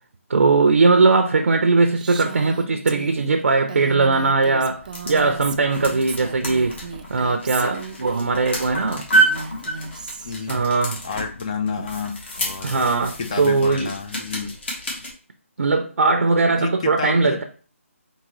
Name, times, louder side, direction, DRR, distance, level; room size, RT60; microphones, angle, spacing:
voice 1, 0.3-6.8 7.1-9.0 10.5-11.0 11.8-11.9 12.6-13.9 15.6-17.4, right 3 dB, 80° right, 0.6 m, -19 dB
Female speech woman speaking, 2.0-8.3 9.1-10.5, right 5 dB, 35° right, 0.4 m, -36 dB
sound 1, 4.7-15.1, right 2 dB, 50° left, 1.6 m, -28 dB
voice 2, 10.2-10.6 11.0-12.9 13.2-14.6 16.4-17.4, left 5 dB, 25° left, 0.4 m, -30 dB
4.1 x 3.7 x 3.0 m
hypercardioid pair, 165°, 8 cm